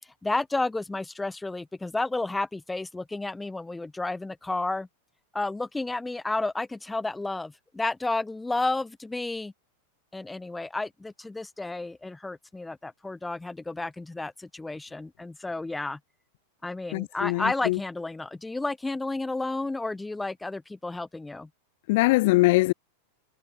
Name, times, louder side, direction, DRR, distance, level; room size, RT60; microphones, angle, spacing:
voice 1, 0.2-4.9 5.3-9.5 10.1-16.0 16.6-21.5, left 2 dB, 5° left, 3.1 m, -31 dB
voice 2, 16.9-17.8 21.9-22.7, left 22 dB, 45° left, 1.4 m, -22 dB
supercardioid pair, 170°, 0 cm